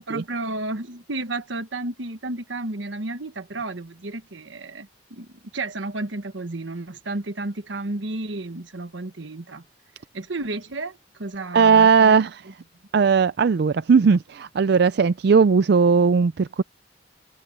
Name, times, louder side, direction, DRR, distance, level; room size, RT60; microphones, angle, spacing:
voice 1, 0.0-9.6 10.1-12.2, right 2 dB, 75° right, 1.3 m, -32 dB
voice 2, 11.5-12.4 12.9-16.6, right 5 dB, 60° right, 0.4 m, -18 dB
head